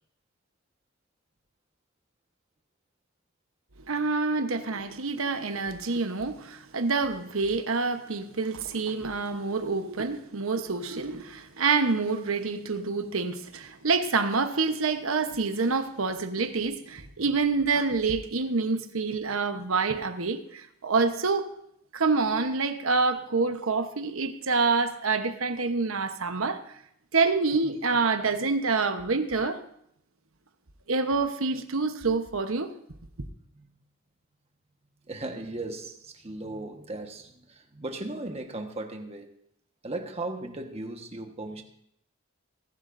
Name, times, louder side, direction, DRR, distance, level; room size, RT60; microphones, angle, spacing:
voice 1, 3.9-21.5 21.9-26.6 27.1-29.6 30.9-32.7, right 4 dB, 85° right, 1.1 m, -27 dB
voice 2, 33.4-33.7 35.1-39.3 39.8-41.6, right 2 dB, 30° right, 1.4 m, -37 dB
24.0 x 11.5 x 2.7 m
head